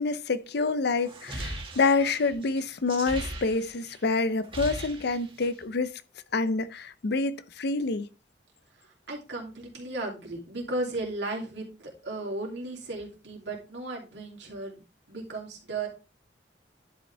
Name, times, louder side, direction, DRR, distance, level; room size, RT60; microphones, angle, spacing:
voice 1, 0.0-6.0 6.3-8.1, left 3 dB, 65° left, 0.6 m, -27 dB
sound 1, 1.0-4.0 4.3-5.6, right 1 dB, 30° right, 1.8 m, -38 dB
voice 2, 8.8-14.8 15.1-15.9, right 2 dB, 75° right, 2.8 m, -35 dB
11.0 x 5.1 x 3.4 m
head